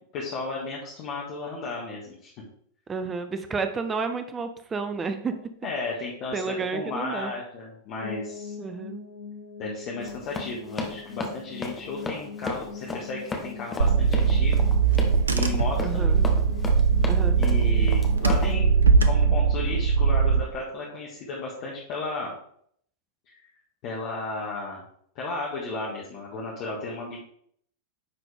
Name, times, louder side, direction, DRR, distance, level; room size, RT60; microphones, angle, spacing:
voice 1, 0.1-2.3 5.6-8.5 9.6-14.7 15.3-16.2 17.4-18.7 19.0-22.3 23.3-23.4 23.8-24.8 25.2-27.2, left 3 dB, 40° left, -4 dB, 1.7 m, -34 dB
voice 2, 2.9-5.4 6.3-7.3 8.6-9.0 15.8-16.3 17.0-17.4, right 4 dB, 20° right, 8 dB, 0.8 m, -31 dB
sound 1, 8.0-20.9, left 5 dB, 70° left, 1.5 m, -42 dB
Run, 10.0-18.5, left 3 dB, 15° left, 1.2 m, -34 dB
Car / Engine, 13.8-20.4, right 5 dB, 75° right, 0.6 m, -21 dB
10.0 x 4.1 x 3.5 m, 0.65 s
figure-of-eight pair, 90°, 0 cm